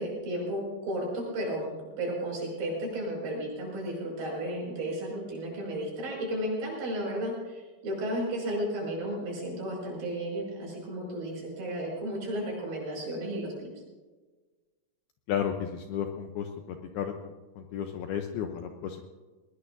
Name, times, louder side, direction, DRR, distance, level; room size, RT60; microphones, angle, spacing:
voice 1, 0.0-13.7, right 1 dB, 60° right, -2 dB, 7.6 m, -33 dB
voice 2, 15.3-17.1 17.6-19.0, left 8 dB, 75° left, 4 dB, 2.4 m, -33 dB
20.0 x 20.0 x 2.7 m, 1.3 s
omnidirectional pair, 5.2 m